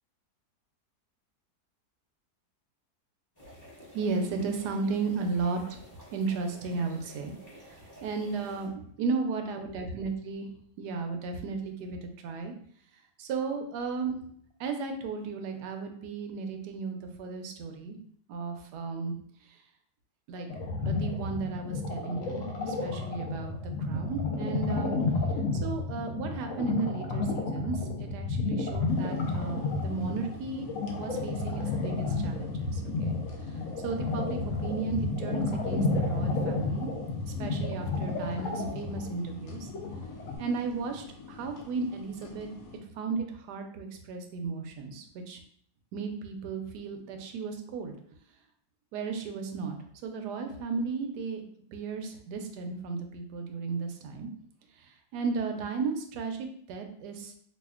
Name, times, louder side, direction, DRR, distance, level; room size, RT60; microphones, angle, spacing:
sound 1, 3.3-8.7, equal, 15° left, 1.0 m, -52 dB
voice 1, 3.9-5.8 6.1-7.3 7.6-8.7 9.0-10.5 10.8-12.5 13.2-14.2 14.6-18.0 18.3-19.1 19.4-19.6 20.3-20.5 20.8-24.9 25.6-30.7 30.9-33.2 33.8-36.9 37.4-39.7 40.4-42.5 42.9-45.4 45.9-47.9 48.9-51.4 51.7-54.3 54.8-57.3, right 4 dB, 80° right, 5 dB, 1.1 m, -34 dB
sound 2, 20.5-40.4, left 3 dB, 60° left, 0.9 m, -31 dB
sound 3, 28.9-42.8, left 5 dB, 80° left, 1.2 m, -48 dB
4.9 x 2.3 x 2.3 m, 0.63 s
omnidirectional pair, 1.8 m